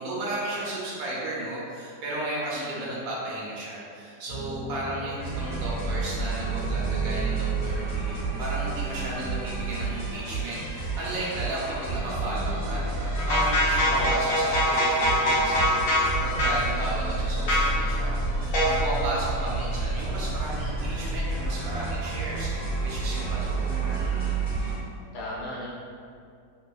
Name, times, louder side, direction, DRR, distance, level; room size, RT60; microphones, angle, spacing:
voice 1, 0.0-24.7, right 1 dB, 65° right, -6 dB, 1.0 m, -34 dB
voice 2, 2.5-2.8 11.7-12.8 13.8-14.2 23.6-24.3 25.1-25.7, left 1 dB, 85° left, -6 dB, 1.3 m, -38 dB
sound 1, 4.3-9.1 9.8-9.9 11.1-11.6 12.3-12.7, equal, 85° right, 1.2 m, -38 dB
sound 2, 5.2-24.7, right 3 dB, 40° left, 1.5 m, -30 dB
sound 3, 13.2-16.1 16.4-16.6 17.5-17.7 18.5-18.9, equal, 60° left, 1.0 m, -23 dB
3.2 x 2.2 x 2.3 m, 2.3 s
omnidirectional pair, 1.7 m